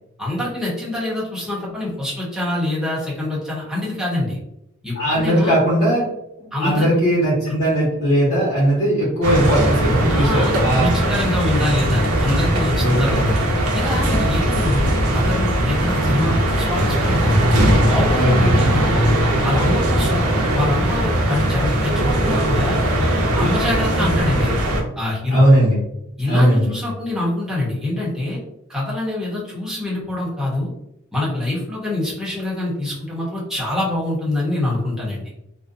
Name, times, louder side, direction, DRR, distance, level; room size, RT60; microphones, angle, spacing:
voice 1, 0.2-4.4 4.8-5.5 6.5-6.9 7.5-7.6 10.1-13.4 13.7-17.5 17.8-19.1 19.4-22.8 23.3-24.5 25.0-25.4 26.2-28.4 28.7-30.7 31.1-35.2, left 1 dB, ahead, -7 dB, 0.9 m, -25 dB
voice 2, 5.0-6.0 6.6-10.9 12.8-13.2 18.2-18.6 25.3-25.8 26.3-26.7, equal, 80° left, -7 dB, 1.0 m, -18 dB
sound 1, 9.2-24.8, right 1 dB, 70° right, 0.6 m, -19 dB
2.5 x 2.2 x 2.5 m, 0.84 s
head